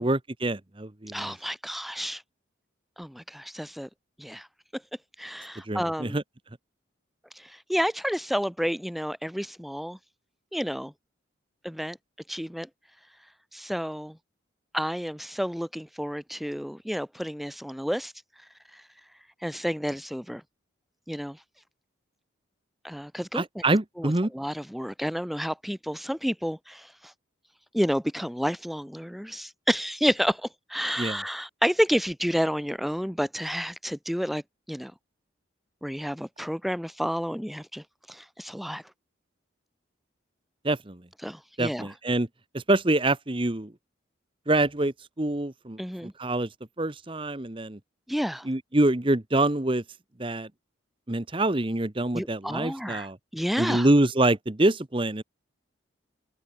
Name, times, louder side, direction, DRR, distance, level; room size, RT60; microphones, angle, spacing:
voice 1, 0.0-1.3 5.7-6.2 23.3-24.3 31.0-31.2 40.6-41.0 41.6-42.3 42.5-43.7 44.5-46.5 46.8-47.8 48.5-49.8 50.2-50.5 51.1-53.2 53.6-55.2, right 2 dB, 25° right, 1.0 m, -25 dB
voice 2, 1.1-2.2 3.0-3.9 4.2-4.5 5.2-6.2 7.3-10.0 10.5-10.9 11.6-12.0 12.3-12.7 13.5-14.2 14.7-18.1 18.7-18.8 19.4-20.4 21.1-21.4 22.8-23.6 24.0-27.1 27.7-34.4 34.7-34.9 35.8-38.8 41.2-41.9 45.8-46.1 48.1-48.5 52.1-53.1 53.3-53.9, equal, ahead, 1.3 m, -30 dB
head